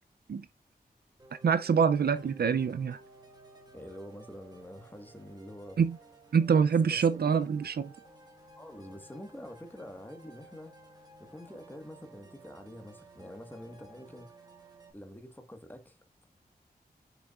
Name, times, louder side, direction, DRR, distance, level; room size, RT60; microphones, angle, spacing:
sound 1, 1.2-14.9, right 2 dB, 25° right, 1.8 m, -56 dB
voice 1, 1.4-3.0 5.8-6.0 6.3-7.9, right 6 dB, 75° right, 0.5 m, -25 dB
voice 2, 3.7-5.8 6.5-7.2 8.6-14.3 14.9-16.0, left 1 dB, 10° left, 1.4 m, -47 dB
6.8 x 6.0 x 2.4 m
wide cardioid pair, 75°, 16 cm